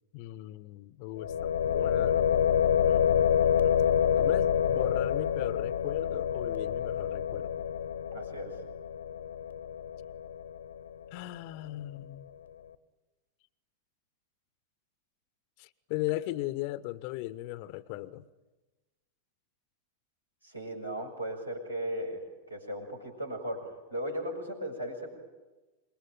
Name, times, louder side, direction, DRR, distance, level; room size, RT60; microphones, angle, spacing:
voice 1, 0.1-2.4 2.8-3.8 4.2-7.5 11.1-12.3 15.6-18.3, left 16 dB, 45° left, 0.9 m, -37 dB
sound 1, 1.2-11.0, left 8 dB, 70° left, 1.1 m, -27 dB
voice 2, 8.1-8.6 20.4-25.1, equal, 85° right, 6.1 m, -37 dB
27.0 x 22.5 x 9.0 m
figure-of-eight pair, 90°, 0 cm